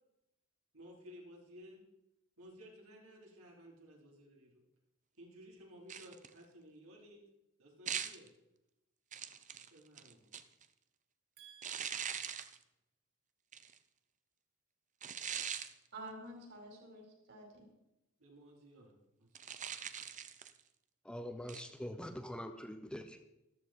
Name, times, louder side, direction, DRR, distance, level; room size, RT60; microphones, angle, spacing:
voice 1, 0.7-1.8 2.4-4.6 5.2-7.2 7.6-8.3 9.7-10.3 18.2-19.3, equal, 75° right, -2 dB, 4.3 m, -56 dB
sound 1, 5.9-6.4 7.9-8.3 9.1-10.7 11.6-12.6 13.5-13.8 15.0-15.7 19.3-20.6 21.5-21.7, right 8 dB, 35° right, 0.7 m, -42 dB
voice 2, 11.4-12.0 15.9-17.6, right 1 dB, 55° right, 1 dB, 4.8 m, -50 dB
voice 3, 21.0-23.3, equal, 5° left, 7 dB, 0.8 m, -44 dB
14.0 x 13.0 x 4.6 m, 0.89 s
head